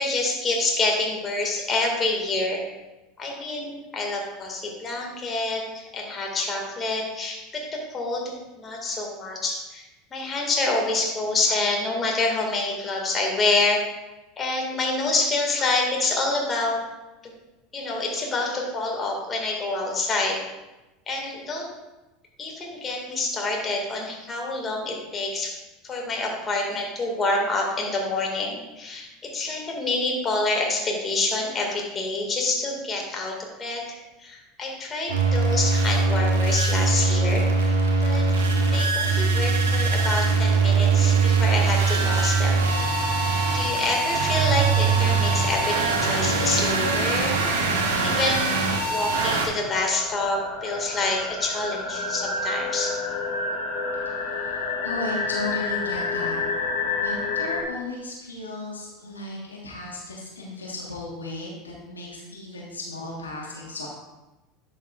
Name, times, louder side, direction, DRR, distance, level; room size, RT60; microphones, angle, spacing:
voice 1, 0.0-2.7 3.2-9.8 10.1-13.8 14.4-16.8 17.2-17.3 17.7-20.4 21.1-21.7 22.4-25.5 25.8-42.7 43.5-47.4 47.7-48.6 48.9-53.0, left 2 dB, 30° left, 0 dB, 1.9 m, -27 dB
sound 1, 35.1-49.5, right 4 dB, 75° right, 1.2 m, -22 dB
sound 2, 44.8-44.9 45.2-57.6, left 3 dB, 70° left, 1.1 m, -30 dB
voice 2, 54.1-54.5 54.8-56.4 57.0-63.9, left 2 dB, 85° left, -3 dB, 1.4 m, -35 dB
11.0 x 6.2 x 2.4 m, 1.1 s
figure-of-eight pair, 80°, 0 cm